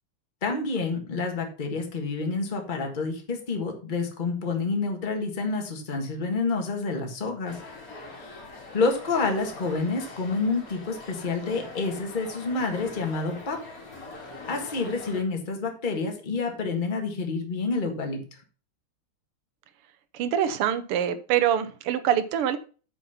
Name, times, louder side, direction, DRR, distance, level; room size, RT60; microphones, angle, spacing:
voice 1, 0.4-7.6 8.1-8.4 8.7-13.6 14.5-18.2, left 4 dB, 25° left, 3 dB, 1.5 m, -28 dB
sound 1, 7.5-15.2, left 2 dB, 40° left, 3.0 m, -43 dB
voice 2, 20.1-22.6, right 10 dB, 90° right, 11 dB, 1.8 m, -25 dB
8.5 x 5.4 x 5.5 m, 0.37 s
omnidirectional pair, 2.4 m